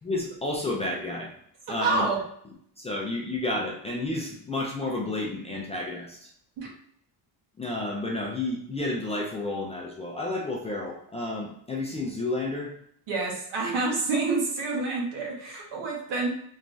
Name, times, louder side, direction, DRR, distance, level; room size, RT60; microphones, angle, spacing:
voice 1, 0.0-1.3 1.7-2.1 2.8-6.3 7.6-12.7, left 2 dB, 15° left, -2 dB, 0.3 m, -31 dB
voice 2, 1.8-2.2 6.6-6.7 13.1-16.3, right 3 dB, 80° right, -2 dB, 1.3 m, -28 dB
3.3 x 3.1 x 2.6 m, 0.67 s
cardioid pair, 170°, 42 cm